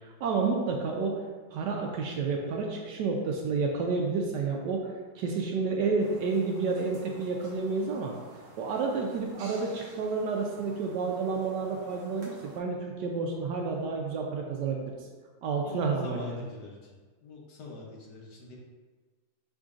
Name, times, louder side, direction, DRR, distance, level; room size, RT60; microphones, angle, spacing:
voice 1, 0.2-1.2 1.5-8.1 8.6-14.9 15.4-16.4, right 4 dB, 75° right, 1 dB, 1.0 m, -30 dB
sound 1, 6.0-12.6, right 1 dB, 50° right, 1.1 m, -51 dB
voice 2, 15.6-16.9 17.2-18.6, left 3 dB, 65° left, -2 dB, 1.2 m, -45 dB
5.4 x 3.8 x 2.4 m, 1.4 s
omnidirectional pair, 2.1 m